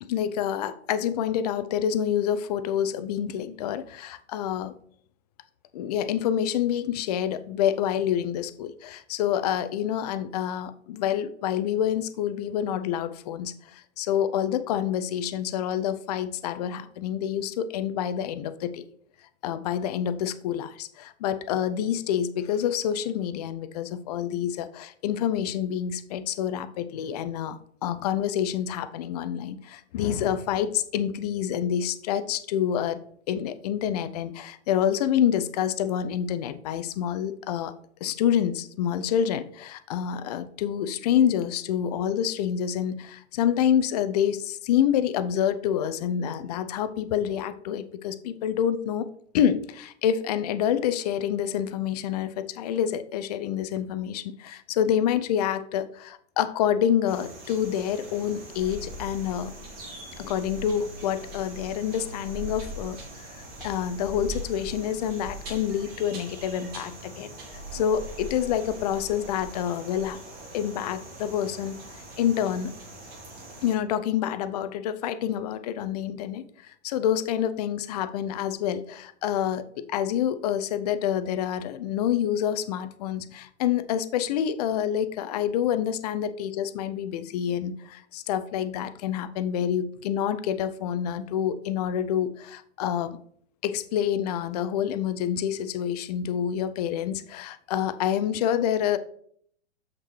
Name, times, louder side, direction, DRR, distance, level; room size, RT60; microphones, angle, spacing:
voice 1, 0.0-4.8 5.7-18.8 19.4-33.0 33.3-37.7 38.0-49.1 49.3-59.6 60.2-63.3 63.6-70.2 70.5-71.8 72.2-72.7 73.6-93.2 93.6-99.0, left 9 dB, 35° left, 12 dB, 0.6 m, -27 dB
sound 1, 57.1-73.8, right 1 dB, 25° right, 2.4 m, -41 dB
7.4 x 6.3 x 3.2 m, 0.62 s
figure-of-eight pair, 110°, 35 cm